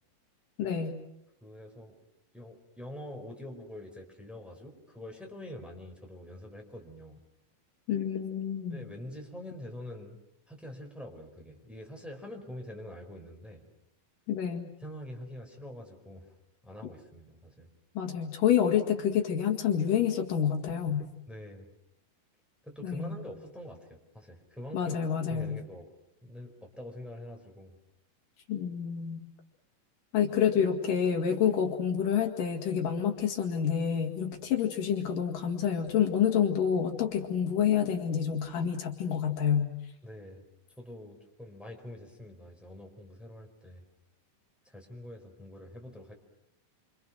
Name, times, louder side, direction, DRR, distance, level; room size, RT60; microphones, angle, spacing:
voice 1, 0.6-1.0 7.9-8.8 14.3-14.7 18.0-21.0 22.8-23.2 24.7-25.6 28.5-29.2 30.1-39.7, left 8 dB, 70° left, 4 dB, 3.5 m, -28 dB
voice 2, 1.4-2.0 2.3-7.2 8.7-10.2 10.5-13.6 14.8-16.3 16.6-17.7 21.3-21.7 22.6-24.9 25.3-25.9 26.2-27.7 40.0-40.4 40.8-43.8 44.6-46.1, left 1 dB, ahead, 2 dB, 4.5 m, -45 dB
28.0 x 26.5 x 6.4 m, 0.81 s
omnidirectional pair, 3.9 m